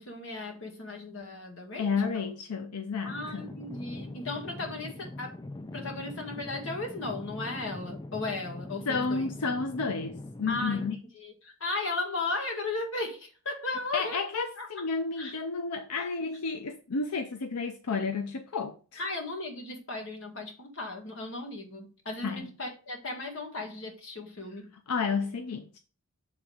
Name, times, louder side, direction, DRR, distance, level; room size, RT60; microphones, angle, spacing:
voice 1, 0.0-1.9 2.1-2.3 3.0-9.3 10.5-10.8 11.1-14.2 14.6-14.7 15.2-15.4 16.0-16.1 19.0-24.7, left 2 dB, 55° left, 1.7 m, -36 dB
voice 2, 1.8-3.5 8.9-11.0 13.9-19.0 22.2-22.5 24.9-25.8, left 4 dB, 85° left, 0.6 m, -31 dB
sound 1, 3.1-11.0, left 2 dB, 15° left, 0.3 m, -42 dB
7.4 x 3.6 x 4.8 m
head